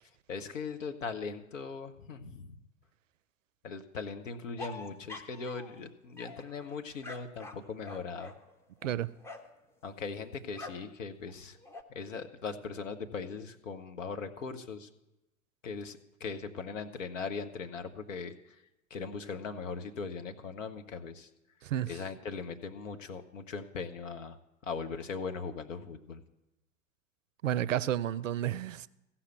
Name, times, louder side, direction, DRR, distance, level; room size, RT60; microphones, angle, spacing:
voice 1, 0.3-2.5 3.6-8.3 9.8-11.6 11.9-14.9 15.6-18.3 18.9-21.3 21.9-24.4 24.6-26.2, left 5 dB, 70° left, 1.1 m, -39 dB
sound 1, 4.6-5.8 6.2-9.6 10.5-10.9 11.3-11.8, left 2 dB, 5° left, 0.6 m, -46 dB
voice 2, 21.6-22.0 27.4-28.9, right 11 dB, 70° right, 0.5 m, -31 dB
15.0 x 5.8 x 7.9 m
figure-of-eight pair, 85°, 40 cm